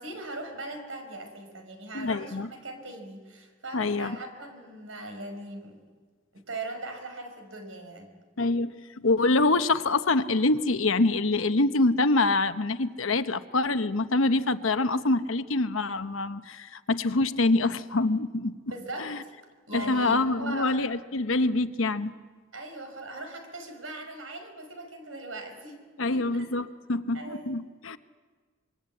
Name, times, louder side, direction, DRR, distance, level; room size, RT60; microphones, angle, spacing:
voice 1, 0.0-5.8 6.3-8.1 18.7-19.3 19.7-20.8 22.5-25.8 26.1-26.5 27.1-27.5, right 2 dB, 85° right, 5 dB, 5.4 m, -39 dB
voice 2, 1.9-2.5 3.7-4.2 8.4-8.7 9.0-18.6 19.0-19.2 19.7-22.1 26.0-28.0, left 2 dB, 85° left, 10 dB, 1.0 m, -25 dB
25.5 x 23.5 x 8.5 m, 1.4 s
head